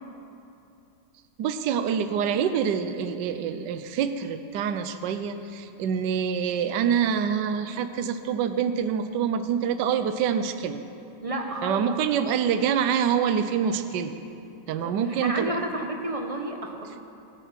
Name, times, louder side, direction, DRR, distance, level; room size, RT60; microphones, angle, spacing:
voice 1, 1.4-10.8 11.6-14.1 14.7-15.6, right 7 dB, 75° right, 9 dB, 1.3 m, -26 dB
voice 2, 11.2-11.9 14.7-17.0, right 1 dB, 20° right, 3 dB, 1.2 m, -31 dB
25.5 x 9.2 x 5.9 m, 2.8 s
omnidirectional pair, 2.0 m